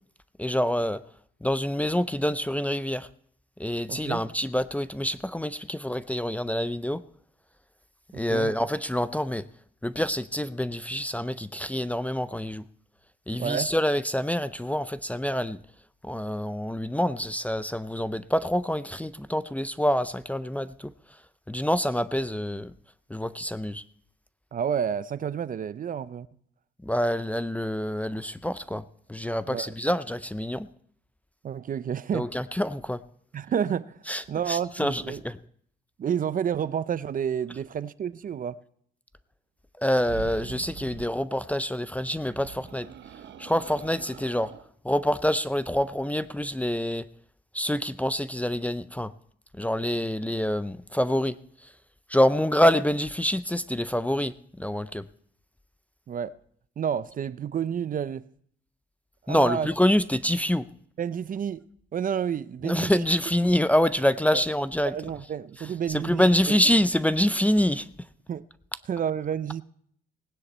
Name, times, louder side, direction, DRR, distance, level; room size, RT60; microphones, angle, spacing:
voice 1, 0.4-1.0 1.4-3.1 3.6-7.0 8.1-9.4 9.8-12.6 13.3-15.6 16.0-20.9 21.5-22.7 23.1-23.8 26.8-30.7 32.1-33.0 34.1-35.4 39.8-42.9 43.4-44.5 44.8-47.1 47.5-49.1 49.5-51.4 52.1-55.1 59.3-60.7 62.6-64.9 65.6-67.9, left 1 dB, 5° left, 0.5 m, -26 dB
voice 2, 3.9-4.2 8.1-8.5 13.4-13.7 24.5-26.3 29.5-29.7 31.4-32.3 33.3-34.0 34.3-35.2 36.0-38.6 56.1-56.3 56.8-58.3 59.3-59.7 61.0-61.6 61.9-63.0 64.3-64.4 64.8-66.6 68.3-68.4 68.9-69.6, right 8 dB, 45° right, 0.5 m, -30 dB
sound 1, 39.9-41.2 42.0-44.7, right 8 dB, 60° right, 0.9 m, -43 dB
18.0 x 9.6 x 4.3 m
cardioid pair, 90°, 20 cm